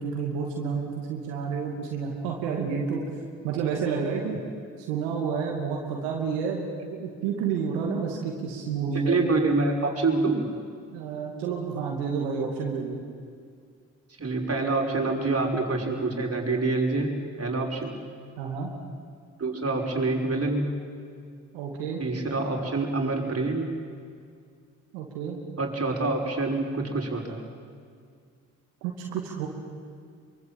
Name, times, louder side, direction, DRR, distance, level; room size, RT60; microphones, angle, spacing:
voice 1, 0.0-3.0 3.4-4.4 4.9-9.2 10.9-13.0 18.4-18.7 21.5-22.0 24.9-25.4 28.8-29.5, right 6 dB, 85° right, 0 dB, 2.6 m, -30 dB
voice 2, 9.1-10.5 14.2-18.0 19.4-20.7 22.0-23.7 25.6-27.4, right 3 dB, 40° right, 1 dB, 6.1 m, -26 dB
25.5 x 23.5 x 9.2 m, 2.2 s
hypercardioid pair, 40°, 38 cm